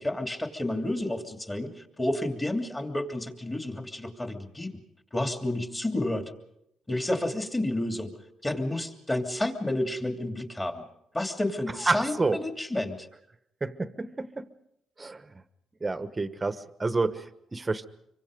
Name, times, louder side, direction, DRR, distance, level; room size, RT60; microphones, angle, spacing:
voice 1, 0.0-4.7 5.1-6.3 6.9-8.1 8.4-10.9 11.1-13.1, left 1 dB, 15° left, 4 dB, 3.0 m, -30 dB
voice 2, 11.9-12.4 13.6-14.5 15.0-15.3 15.8-17.9, right 3 dB, 20° right, 12 dB, 1.3 m, -29 dB
26.0 x 24.0 x 5.3 m, 0.78 s
cardioid pair, 90°, 0 cm